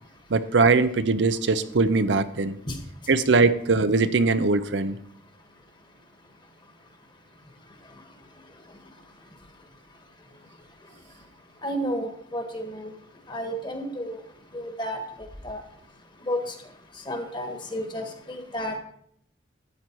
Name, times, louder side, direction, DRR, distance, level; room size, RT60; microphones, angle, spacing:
voice 1, 0.3-2.5 3.1-5.0, right 3 dB, 70° right, 12 dB, 0.7 m, -21 dB
voice 2, 11.6-12.9 13.3-14.2 14.5-15.0 15.4-15.6 16.3-16.4 17.1-18.8, equal, 25° left, 5 dB, 1.6 m, -31 dB
12.5 x 8.5 x 4.6 m, 0.67 s
head